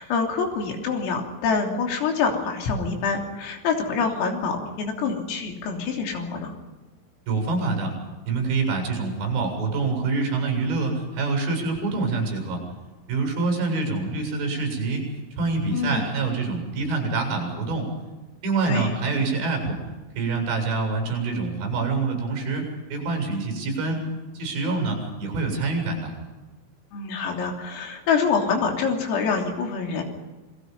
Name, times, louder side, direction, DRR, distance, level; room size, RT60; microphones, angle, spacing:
voice 1, 0.0-6.5 15.7-16.1 18.7-19.0 26.9-30.0, left 5 dB, 85° left, 2 dB, 5.9 m, -26 dB
voice 2, 7.3-7.9 8.3-12.6 13.1-15.1 15.4-17.9 18.4-19.8 20.2-24.0 24.3-26.1, right 3 dB, 60° right, 3 dB, 9.8 m, -26 dB
28.5 x 21.5 x 5.5 m, 1.2 s
omnidirectional pair, 5.9 m